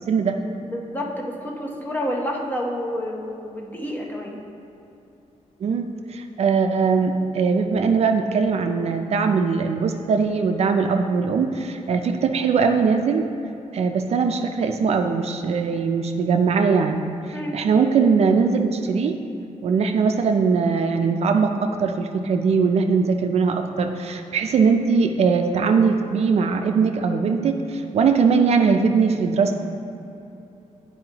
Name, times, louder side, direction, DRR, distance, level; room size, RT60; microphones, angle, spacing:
voice 1, 0.1-0.4 5.6-13.3 13.7-17.1 17.5-19.2 19.6-29.6, right 5 dB, 55° right, 5 dB, 0.4 m, -21 dB
voice 2, 0.6-4.4 17.3-17.6, equal, 15° left, -1 dB, 0.8 m, -29 dB
10.5 x 4.5 x 2.9 m, 2.8 s
wide cardioid pair, 160°, 13 cm